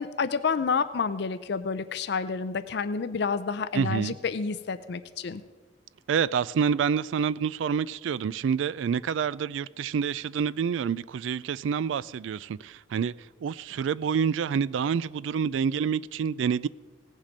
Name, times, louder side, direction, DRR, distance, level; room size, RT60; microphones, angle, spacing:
voice 1, 0.0-5.4, left 5 dB, 65° left, 12 dB, 0.5 m, -29 dB
voice 2, 3.7-4.2 6.1-16.7, right 7 dB, 85° right, 20 dB, 0.3 m, -27 dB
17.5 x 7.3 x 5.2 m, 1.4 s
head